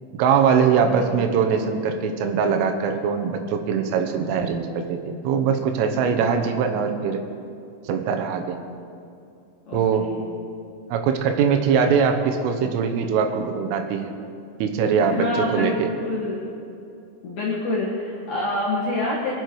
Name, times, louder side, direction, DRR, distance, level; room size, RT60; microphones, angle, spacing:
voice 1, 0.1-7.2 7.9-8.6 9.7-10.1 10.9-14.1 14.6-15.9, right 6 dB, 85° right, 5 dB, 3.6 m, -22 dB
voice 2, 0.8-1.2 6.2-6.6 9.7-10.2 15.0-15.7 16.0-16.5 17.2-19.3, left 2 dB, 55° left, -5 dB, 2.1 m, -27 dB
22.0 x 8.7 x 4.7 m, 2.5 s
omnidirectional pair, 5.7 m